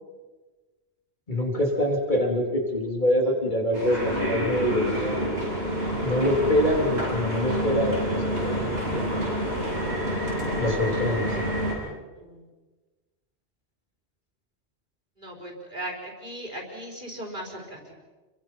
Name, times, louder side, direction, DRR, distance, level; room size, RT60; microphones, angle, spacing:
voice 1, 1.3-5.4 6.0-9.3 10.6-11.3, equal, 45° left, 0 dB, 3.9 m, -25 dB
sound 1, 3.7-11.7, equal, 85° right, 7.5 m, -28 dB
voice 2, 15.2-18.0, right 1 dB, 45° right, 0 dB, 5.1 m, -38 dB
29.5 x 23.5 x 5.7 m, 1.3 s
omnidirectional pair, 1.1 m